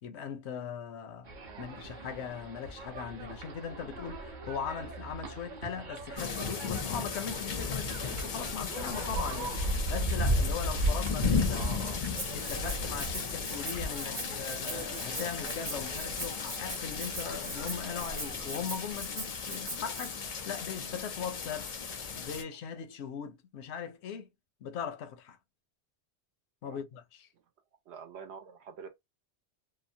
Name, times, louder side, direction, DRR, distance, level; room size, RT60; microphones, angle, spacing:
voice 1, 0.0-1.3 1.6-11.7 12.3-21.7 22.1-24.3 24.6-25.4 26.6-27.3, left 7 dB, 80° left, 0.8 m, -39 dB
sound 1, 1.2-18.5, right 1 dB, 50° right, 0.8 m, -37 dB
sound 2, 6.2-22.4, left 5 dB, 55° left, 0.4 m, -36 dB
voice 2, 11.5-12.0 14.0-14.2 26.6-26.8 27.3-27.4 27.9-28.9, right 7 dB, 75° right, 0.9 m, -46 dB
Rattle (instrument), 12.1-20.1, right 2 dB, 25° right, 0.3 m, -42 dB
2.8 x 2.0 x 2.6 m
omnidirectional pair, 1.1 m